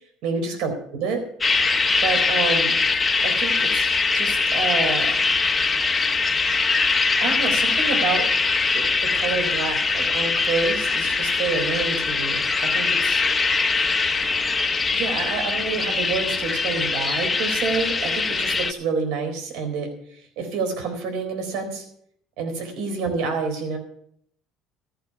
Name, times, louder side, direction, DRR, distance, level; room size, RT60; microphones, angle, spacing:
voice 1, 0.2-1.2 2.0-2.8 3.2-5.2 7.2-8.3 8.7-13.2 14.9-19.9 20.4-21.8 22.4-23.8, right 4 dB, 75° right, 4 dB, 4.0 m, -28 dB
sound 1, 1.4-18.7, left 4 dB, 20° left, 0.8 m, -22 dB
13.5 x 6.7 x 9.3 m, 0.67 s
cardioid pair, 115°, 0 cm